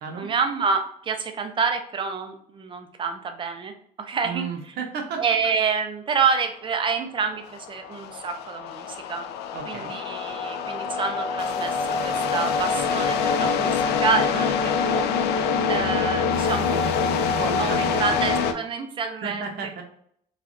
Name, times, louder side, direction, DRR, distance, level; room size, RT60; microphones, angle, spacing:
voice 1, 0.2-4.5 5.2-9.3 9.7-15.4 15.7-19.4, right 5 dB, 30° right, 6 dB, 0.5 m, -28 dB
voice 2, 4.2-5.2 9.5-10.0 17.3-18.2 19.2-19.8, right 5 dB, 70° right, 2 dB, 0.8 m, -33 dB
sound 1, 7.4-18.5, left 5 dB, 75° left, 0.4 m, -25 dB
3.2 x 2.4 x 2.6 m, 0.65 s
cardioid pair, 110°, 17 cm